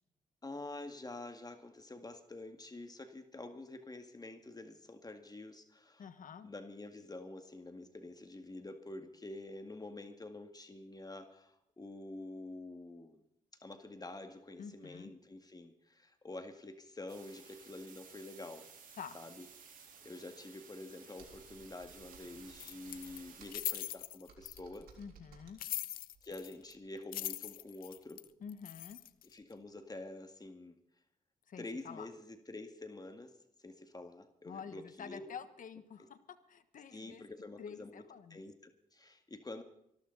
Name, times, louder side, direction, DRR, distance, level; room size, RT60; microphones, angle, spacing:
voice 1, 0.4-6.1 6.4-13.2 13.6-18.7 19.1-19.5 20.0-24.9 26.2-28.3 29.3-30.8 31.6-33.3 33.6-35.3 36.9-38.0 38.3-39.6, left 2 dB, 25° left, 7 dB, 2.0 m, -48 dB
voice 2, 6.0-6.5 14.6-15.1 19.0-19.2 25.0-25.6 28.4-29.0 31.5-32.1 34.5-36.2 36.5-37.3 37.6-38.4, left 7 dB, 65° left, 12 dB, 1.4 m, -48 dB
sound 1, 17.1-23.8, right 6 dB, 65° right, 3.8 m, -56 dB
Computer keyboard, 21.2-26.8, right 4 dB, 85° right, 3.9 m, -60 dB
sound 2, 22.6-24.8 25.6-26.7 27.0-29.3, left 13 dB, 85° left, 0.6 m, -41 dB
24.0 x 13.0 x 4.1 m, 0.77 s
cardioid pair, 60°, 15 cm